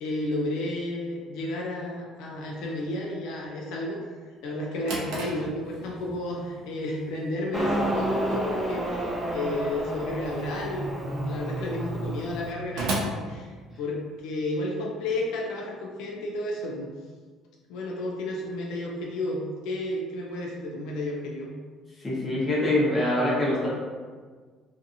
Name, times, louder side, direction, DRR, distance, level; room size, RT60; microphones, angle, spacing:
voice 1, 0.0-4.0 4.4-16.9 17.7-21.5, left 1 dB, 80° left, -2 dB, 0.4 m, -32 dB
Drawer open or close, 4.5-14.2, right 2 dB, 85° right, 0.6 m, -38 dB
Motorcycle, 7.5-12.5, right 1 dB, 10° right, 0.4 m, -30 dB
voice 2, 21.9-23.7, left 1 dB, 25° left, -6 dB, 0.9 m, -24 dB
2.6 x 2.5 x 2.5 m, 1.5 s
cardioid pair, 125°, 0 cm